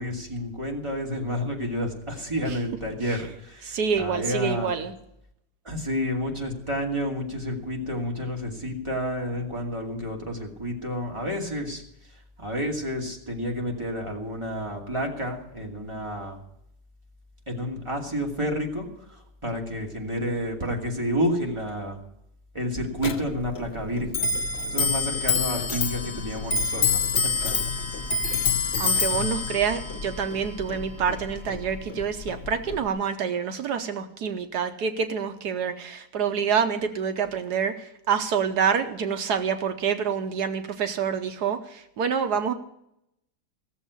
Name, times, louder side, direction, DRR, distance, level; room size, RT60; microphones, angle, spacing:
voice 1, 0.0-3.2 4.0-4.7 5.7-11.8 12.4-16.4 17.5-18.8 19.4-22.0 22.5-24.3 24.7-26.8, equal, 15° right, 0 dB, 2.5 m, -30 dB
voice 2, 2.4-3.4 3.6-4.9 28.2-28.5 28.8-42.5, right 7 dB, 75° right, 9 dB, 1.4 m, -27 dB
Clock, 23.0-32.9, left 5 dB, 45° left, 0.9 m, -27 dB
15.5 x 7.3 x 8.2 m, 0.78 s
omnidirectional pair, 1.8 m